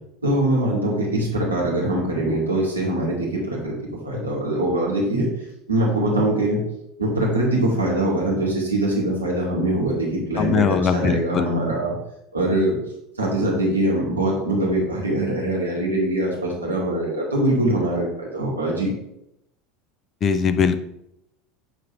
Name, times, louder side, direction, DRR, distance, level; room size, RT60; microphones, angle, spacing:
voice 1, 0.2-5.3 5.7-6.6 7.0-12.0 12.3-12.8 13.2-18.9, right 1 dB, 85° right, -3 dB, 2.0 m, -23 dB
voice 2, 10.4-11.6 20.2-20.7, left 6 dB, 35° left, 10 dB, 0.6 m, -21 dB
8.1 x 3.6 x 4.6 m, 0.82 s
figure-of-eight pair, 75°, 0 cm